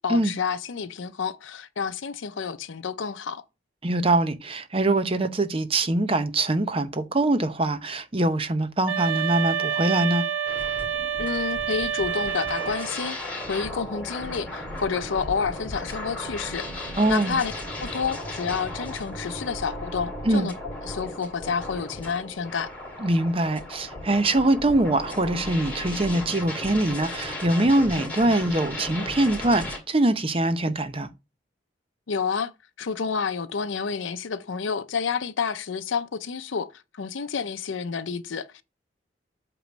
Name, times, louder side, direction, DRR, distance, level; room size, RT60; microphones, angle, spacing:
voice 1, 0.0-3.4 11.2-13.2 13.5-17.5 17.8-20.5 20.8-22.7 32.1-32.5 32.8-38.6, left 6 dB, 85° left, 0.6 m, -29 dB
voice 2, 3.8-10.2 17.0-17.4 20.2-20.5 23.0-31.1, right 2 dB, 30° right, 0.7 m, -23 dB
sound 1, 8.9-13.0, right 7 dB, 85° right, 0.7 m, -28 dB
sound 2, 10.5-29.8, left 1 dB, 10° left, 2.5 m, -36 dB
8.3 x 3.1 x 6.1 m
head